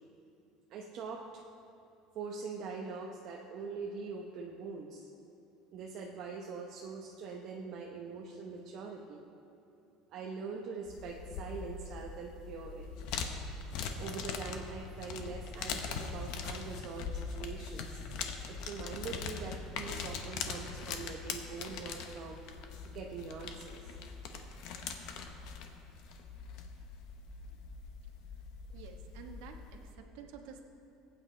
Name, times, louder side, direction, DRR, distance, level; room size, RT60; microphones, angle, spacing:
voice 1, 0.7-1.3 2.1-5.1 5.7-9.2 10.1-12.9 14.0-18.0 18.5-22.4 22.9-24.0, right 5 dB, 40° right, -1 dB, 0.8 m, -43 dB
sound 1, 10.9-29.9, left 5 dB, 55° left, 0.9 m, -42 dB
voice 2, 28.7-30.6, right 6 dB, 70° right, 4 dB, 1.1 m, -50 dB
20.5 x 8.8 x 3.3 m, 2.8 s
cardioid pair, 175°, 0 cm